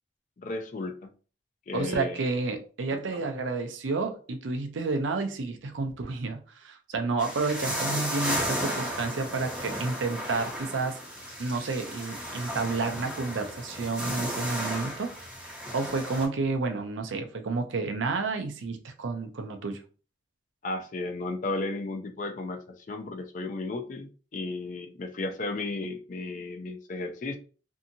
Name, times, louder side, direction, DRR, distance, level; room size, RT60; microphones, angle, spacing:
voice 1, 0.4-1.1 1.7-2.2 2.9-3.2 20.6-22.6 22.9-27.4, left 2 dB, 40° left, 0.4 m, -34 dB
voice 2, 1.7-11.0 11.4-15.1 15.7-19.8, right 3 dB, 85° right, 0.5 m, -30 dB
sound 1, 7.2-16.3, equal, 5° right, 0.6 m, -34 dB
2.7 x 2.6 x 2.6 m
head